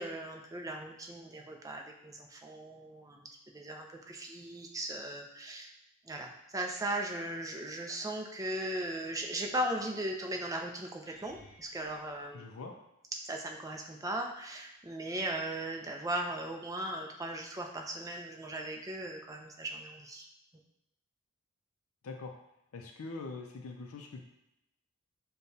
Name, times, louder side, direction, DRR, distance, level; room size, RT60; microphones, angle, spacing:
voice 1, 0.0-3.3 3.5-5.7 6.1-12.4 13.3-20.2, right 1 dB, 15° right, 1 dB, 0.5 m, -38 dB
sound 1, 11.0-13.3 14.0-14.5 14.8-15.0 19.3-19.4, left 1 dB, 35° right, 1.2 m, -62 dB
voice 2, 12.3-12.7 22.0-22.3 22.7-24.2, left 3 dB, 80° left, 2 dB, 0.5 m, -43 dB
6.6 x 2.2 x 2.7 m, 0.86 s
head